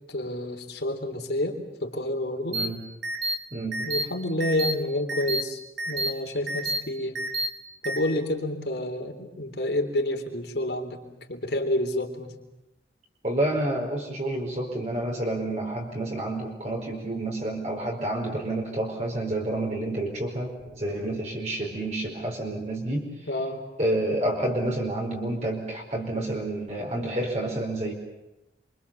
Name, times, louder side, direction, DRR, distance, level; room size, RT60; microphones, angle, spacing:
voice 1, 0.1-2.6 3.8-5.6 5.9-7.2 7.8-11.0 11.3-12.3 23.3-23.6, left 1 dB, 70° left, 3 dB, 3.6 m, -29 dB
voice 2, 2.5-2.8 3.5-3.9 13.2-23.1 23.8-27.9, right 1 dB, 40° right, -1 dB, 4.7 m, -29 dB
sound 1, 2.5-2.7 3.0-3.3 3.7-4.0 4.4-4.7 5.1-5.4 5.8-6.1 6.5-6.8 7.1-7.5 7.8-8.0, right 2 dB, 90° right, 5.2 m, -28 dB
28.0 x 25.0 x 7.2 m, 0.91 s
head